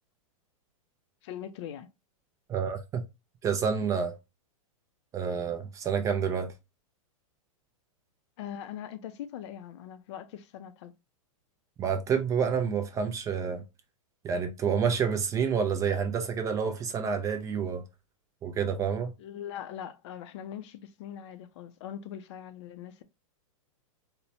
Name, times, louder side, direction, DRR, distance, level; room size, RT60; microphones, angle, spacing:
voice 1, 1.2-1.9 8.4-10.9 19.2-23.0, left 10 dB, 55° left, 0.5 m, -41 dB
voice 2, 2.5-3.0 3.4-4.1 5.1-6.5 11.8-13.6 14.2-17.8 18.4-19.1, right 6 dB, 20° right, 0.4 m, -28 dB
4.2 x 2.1 x 2.7 m
hypercardioid pair, 140°, 18 cm